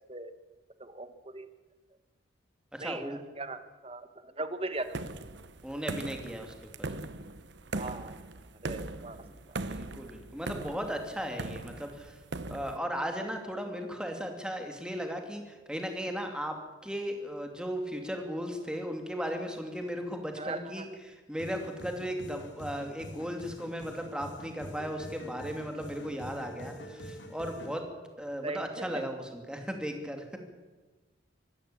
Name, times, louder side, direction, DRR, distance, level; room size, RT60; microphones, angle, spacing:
voice 1, 0.8-1.5 2.8-5.0 7.7-8.2 8.6-9.2 20.4-20.9 28.4-29.1, right 2 dB, 30° right, 10 dB, 1.4 m, -39 dB
voice 2, 2.7-3.2 5.6-6.5 9.3-9.4 9.7-12.2 12.5-16.6 16.8-27.9 28.2-30.2, equal, 5° right, 4 dB, 2.5 m, -36 dB
sound 1, 4.9-12.8, right 2 dB, 65° right, 1.0 m, -40 dB
sound 2, 21.4-27.8, left 1 dB, 65° left, 2.7 m, -45 dB
24.5 x 13.0 x 8.7 m, 1.3 s
head